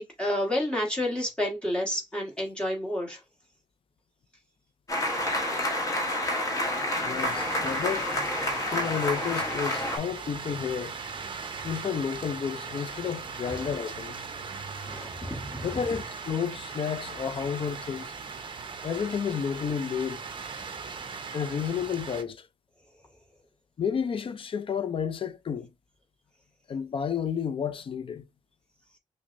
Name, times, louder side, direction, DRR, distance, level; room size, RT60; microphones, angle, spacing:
voice 1, 0.0-3.2 13.4-13.7 14.9-15.8, left 1 dB, 10° left, 1.4 m, -30 dB
sound 1, 4.9-10.0, left 1 dB, 25° left, 1.0 m, -29 dB
voice 2, 7.0-8.1 8.7-11.0 11.6-14.3 15.6-18.1 18.8-20.2 21.3-22.5 23.8-25.7 26.7-28.2, left 7 dB, 45° left, 0.4 m, -31 dB
sound 2, 7.1-22.2, right 5 dB, 40° right, 0.6 m, -39 dB
5.8 x 2.1 x 2.5 m
wide cardioid pair, 130°, 13 cm